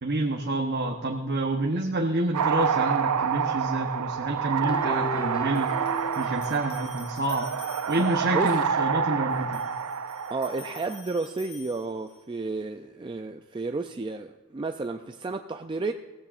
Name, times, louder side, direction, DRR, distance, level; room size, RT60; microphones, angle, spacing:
voice 1, 0.0-5.7 6.2-7.5 7.9-9.6, right 2 dB, 50° right, 2 dB, 0.9 m, -28 dB
sound 1, 2.3-11.0, right 7 dB, 90° right, 0.6 m, -28 dB
sound 2, 4.6-6.6, equal, 20° left, 2.0 m, -37 dB
sound 3, 5.5-8.4 9.3-12.4, left 4 dB, 50° left, 3.8 m, -49 dB
voice 2, 10.3-15.9, right 3 dB, 20° right, 6 dB, 0.3 m, -32 dB
18.5 x 15.0 x 2.5 m, 1.4 s
head